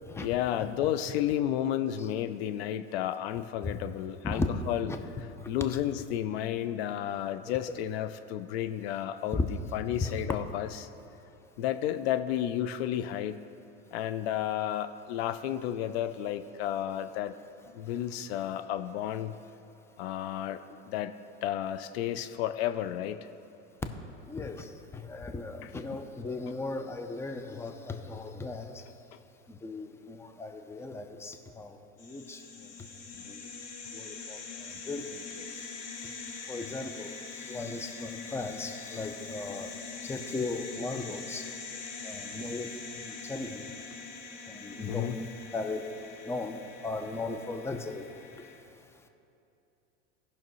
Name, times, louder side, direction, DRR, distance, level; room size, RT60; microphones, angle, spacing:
voice 1, 0.2-4.9 5.5-10.9 11.6-13.4 13.9-17.3 17.7-19.3 20.0-21.1 21.4-23.3 25.6-25.7 44.9-45.2, left 11 dB, 60° left, 11 dB, 0.5 m, -32 dB
voice 2, 24.3-28.8 29.6-32.4 33.3-33.4 33.9-34.4 34.9-35.5 36.5-39.7 40.0-41.4 42.0-42.7 43.0-43.7 44.5-45.8 46.2-48.0, left 3 dB, 5° left, 6 dB, 0.6 m, -36 dB
sound 1, 32.0-48.6, left 4 dB, 45° left, 1.4 m, -43 dB
17.5 x 5.9 x 3.1 m, 2.8 s
hypercardioid pair, 105°, 36 cm